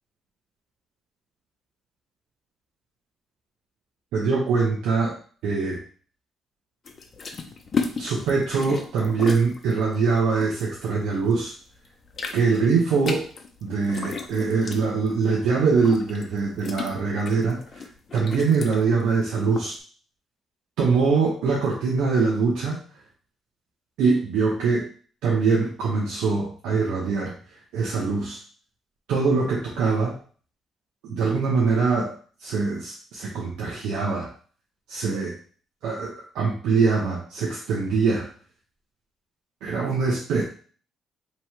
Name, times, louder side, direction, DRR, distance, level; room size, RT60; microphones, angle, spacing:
voice 1, 4.1-5.1 5.4-5.8 8.0-11.5 12.3-13.3 13.6-17.8 18.1-19.8 20.8-22.8 24.0-24.9 25.2-27.3 27.7-28.4 29.1-30.1 31.1-32.1 32.4-34.3 34.9-35.3 35.8-38.3 39.6-40.4, right 4 dB, 90° right, -3 dB, 0.8 m, -23 dB
sound 1, 6.9-11.4 11.7-19.7, left 5 dB, 45° left, 0.6 m, -34 dB
3.0 x 2.8 x 4.5 m, 0.43 s
cardioid pair, 90°, 0 cm